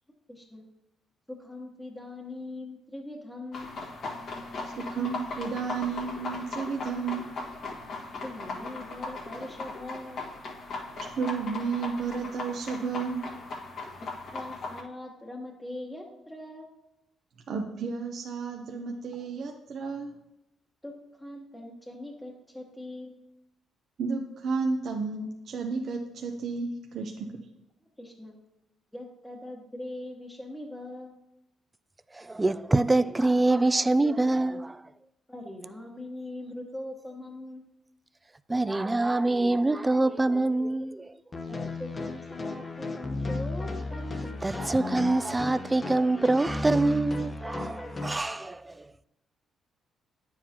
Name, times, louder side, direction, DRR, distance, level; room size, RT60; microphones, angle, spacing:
voice 1, 0.3-0.7 1.3-3.8 8.2-10.2 14.0-16.7 19.1-19.2 20.8-23.2 28.0-28.4 28.9-31.2 35.3-37.6 41.5-44.4, left 1 dB, 5° left, 1.2 m, -41 dB
sound 1, 3.5-14.8, left 3 dB, 65° left, 1.6 m, -38 dB
voice 2, 4.7-7.3 11.1-13.2 17.5-20.1 24.0-27.4, right 5 dB, 65° right, 0.7 m, -32 dB
voice 3, 32.1-34.8 38.5-41.1 44.4-48.9, right 2 dB, 15° right, 0.3 m, -25 dB
sound 2, 41.3-48.2, left 2 dB, 35° left, 0.9 m, -34 dB
9.2 x 7.3 x 2.9 m
cardioid pair, 90°, 0 cm